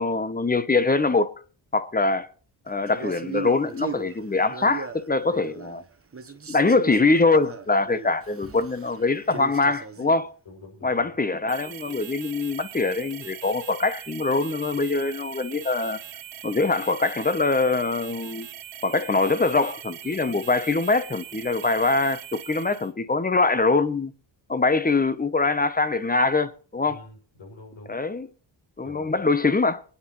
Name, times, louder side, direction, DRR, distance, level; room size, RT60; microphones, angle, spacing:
voice 1, 0.0-1.3 1.7-2.3 2.7-5.8 6.5-10.3 10.8-16.0 16.4-18.5 18.8-24.1 24.5-27.1 27.9-28.3 28.8-29.8, left 3 dB, 20° left, 0.8 m, -23 dB
Male speech man speaking, 2.9-5.9 6.1-10.3, right 5 dB, 30° right, 1.2 m, -37 dB
voice 2, 10.4-11.1 26.9-27.9 28.8-29.1, left 2 dB, 75° left, 6.3 m, -46 dB
sound 1, 11.5-22.9, right 10 dB, 75° right, 1.2 m, -41 dB
23.5 x 9.7 x 3.1 m
cardioid pair, 85°, 46 cm